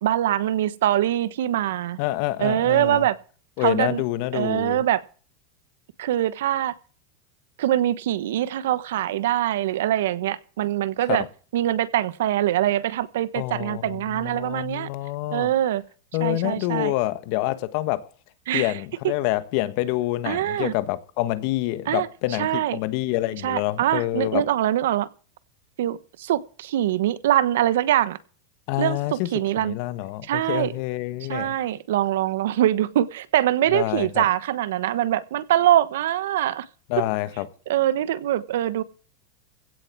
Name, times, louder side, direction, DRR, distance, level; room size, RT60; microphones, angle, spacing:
voice 1, 0.0-2.0 2.4-3.2 3.6-4.0 4.3-5.0 6.0-6.7 7.6-11.2 11.5-14.9 15.3-15.8 16.2-16.9 18.5-18.7 20.2-20.7 21.9-22.1 22.4-22.8 23.4-25.1 25.8-28.2 28.8-29.7 30.3-30.7 31.3-36.6 37.7-38.8, right 12 dB, 80° right, 1.2 m, -23 dB
voice 2, 2.0-3.1 3.6-4.8 11.1-11.3 13.3-15.5 16.1-18.0 18.5-24.5 28.7-31.5 33.7-34.3 36.9-37.5, left 16 dB, 50° left, 1.4 m, -27 dB
16.5 x 7.9 x 6.1 m
supercardioid pair, 155°, 0 cm